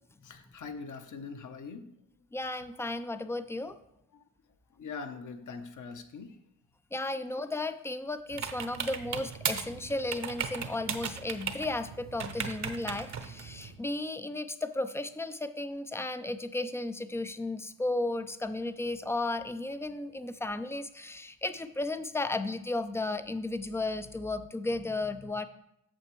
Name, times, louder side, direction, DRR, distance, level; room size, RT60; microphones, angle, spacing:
voice 1, 0.2-2.0 4.1-4.2 4.8-6.4, left 4 dB, 45° left, 8 dB, 1.0 m, -42 dB
voice 2, 2.3-3.8 6.9-25.5, left 2 dB, 5° left, 11 dB, 0.5 m, -34 dB
sound 1, 8.3-13.8, right 7 dB, 40° right, 0.9 m, -37 dB
8.7 x 6.6 x 3.1 m, 0.80 s
supercardioid pair, 60°, 41 cm